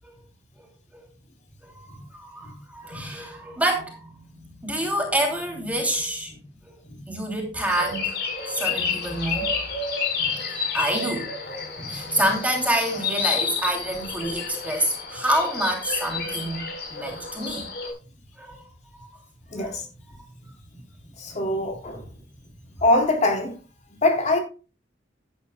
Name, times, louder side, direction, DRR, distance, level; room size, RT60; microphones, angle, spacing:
voice 1, 1.6-6.3 7.1-9.7 10.5-11.4 11.9-17.7 18.4-18.6 19.0-19.1 19.6-19.8, right 1 dB, 10° right, 2.9 m, -27 dB
sound 1, 7.6-17.9, left 5 dB, 60° left, 4.6 m, -30 dB
voice 2, 19.5-19.9 21.2-22.0 22.8-23.5 24.0-24.4, left 2 dB, 40° left, 3.7 m, -23 dB
15.5 x 10.5 x 2.3 m
head